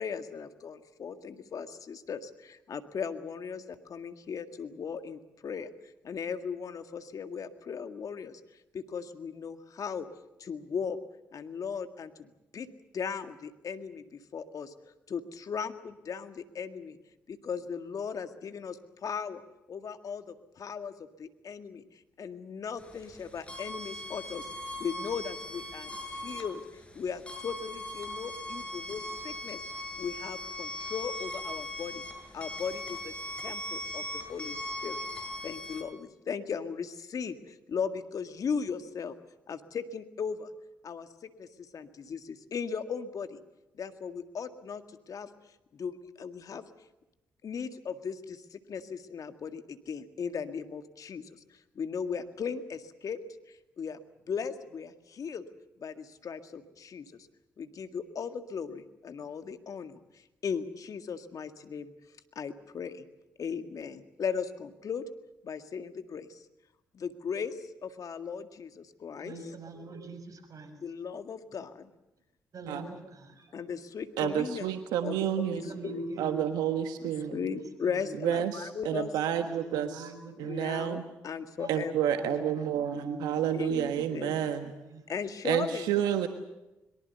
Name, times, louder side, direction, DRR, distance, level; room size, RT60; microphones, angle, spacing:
voice 1, 0.0-5.7 6.0-8.4 8.7-10.1 10.4-11.0 11.3-12.7 12.9-17.0 17.3-19.4 19.7-26.6 26.9-29.6 30.0-32.0 32.3-33.1 33.4-35.0 35.4-39.2 39.5-40.5 40.8-41.5 41.7-43.4 43.8-44.8 45.1-45.3 45.7-46.6 47.4-53.2 53.5-54.0 54.3-55.4 55.8-57.3 57.6-60.0 60.4-61.9 62.4-63.0 63.4-65.0 65.4-66.4 66.9-69.5 70.8-71.9 73.5-74.8 75.0-75.5 75.8-76.0 77.0-79.2 80.4-82.5 83.5-84.4 85.1-86.0, left 6 dB, 55° left, 9 dB, 1.9 m, -37 dB
sound 1, 22.8-35.8, left 1 dB, 15° left, 7.5 m, -40 dB
voice 2, 69.2-70.8 72.5-73.6 75.1-75.2 75.5-76.4 77.0-78.2 79.3-80.6 81.6-81.9 82.2-83.4 84.6-85.1, right 1 dB, 55° right, 8 dB, 6.1 m, -44 dB
voice 3, 74.2-75.6 76.2-77.4 78.2-79.9 80.4-81.0 81.7-84.7 85.4-86.3, right 9 dB, 80° right, 8 dB, 1.4 m, -29 dB
23.5 x 23.5 x 6.9 m, 0.95 s
hypercardioid pair, 45°, 7 cm